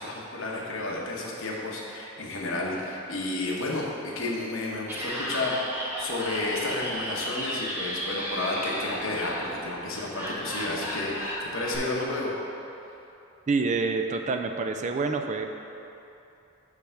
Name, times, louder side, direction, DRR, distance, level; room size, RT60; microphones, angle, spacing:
voice 1, 0.0-12.4, left 2 dB, 70° left, -3 dB, 1.2 m, -31 dB
Laughter, 4.8-11.8, equal, 10° right, 1.0 m, -34 dB
voice 2, 13.5-15.5, right 4 dB, 35° right, 5 dB, 0.4 m, -27 dB
8.4 x 3.4 x 5.9 m, 2.8 s
head